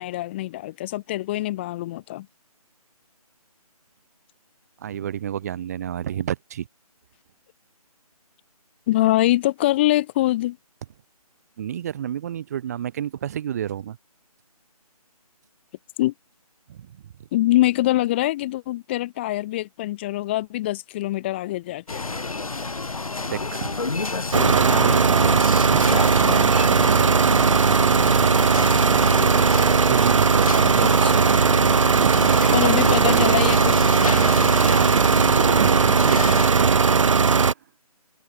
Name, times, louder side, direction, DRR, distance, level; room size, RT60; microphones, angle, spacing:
voice 1, 0.0-2.3 8.9-10.6 16.0-16.1 17.3-22.0 30.8-31.2 32.5-33.8, left 16 dB, 15° left, 2.1 m, -24 dB
voice 2, 4.8-6.7 11.6-14.0 16.7-17.1 23.3-23.8 24.3-28.3 29.9-33.3 33.9-37.0, right 10 dB, 25° right, 2.4 m, -30 dB
sound 1, 21.9-36.5, left 3 dB, 60° left, 6.2 m, -30 dB
sound 2, 24.3-37.5, right 5 dB, 55° right, 0.5 m, -18 dB
figure-of-eight pair, 155°, 20 cm